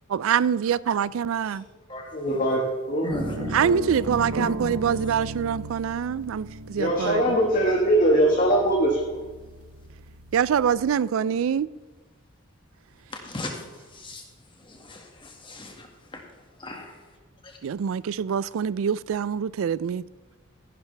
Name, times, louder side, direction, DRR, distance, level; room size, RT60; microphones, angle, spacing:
voice 1, 0.1-1.7 3.5-7.2 10.3-11.7 17.6-20.0, right 7 dB, 70° right, 0.3 m, -25 dB
voice 2, 2.1-2.6 2.9-3.1 6.7-9.2, right 1 dB, 40° left, 1.5 m, -21 dB
voice 3, 3.0-3.5 4.4-4.5 13.3-13.5 13.9-14.2 14.7-15.9 16.1-16.2 16.6-16.9 17.4-17.5, left 2 dB, 25° left, 1.8 m, -36 dB
sound 1, 3.1-11.0, right 1 dB, 90° right, 0.8 m, -36 dB
14.5 x 11.0 x 3.3 m
head